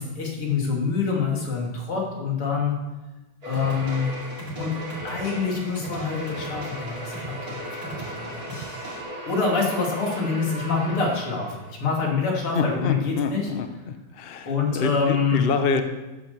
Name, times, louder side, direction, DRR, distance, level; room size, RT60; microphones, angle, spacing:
voice 1, 0.0-2.8 3.5-4.1 4.5-4.8 5.0-8.7 9.3-13.5 14.5-15.4, left 5 dB, 80° left, -1 dB, 3.6 m, -26 dB
sound 1, 3.4-11.7, equal, 40° right, 3.7 m, -37 dB
sound 2, 3.5-9.0, right 2 dB, 60° right, 3.9 m, -40 dB
voice 2, 12.5-15.8, left 5 dB, 50° left, 8 dB, 0.6 m, -27 dB
14.0 x 8.5 x 6.9 m, 1.1 s
omnidirectional pair, 2.4 m